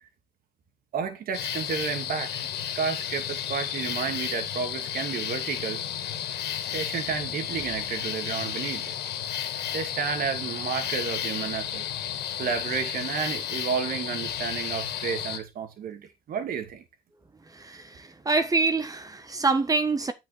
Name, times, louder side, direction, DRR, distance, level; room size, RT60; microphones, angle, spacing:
voice 1, 0.9-5.8 6.7-8.9 9.4-11.8 12.4-16.8, right 6 dB, 60° right, 2.7 m, -31 dB
sound 1, 1.3-15.4, left 10 dB, 75° left, 2.2 m, -32 dB
voice 2, 17.5-20.1, right 3 dB, 20° right, 1.3 m, -26 dB
9.2 x 6.0 x 4.2 m
cardioid pair, 110°, 17 cm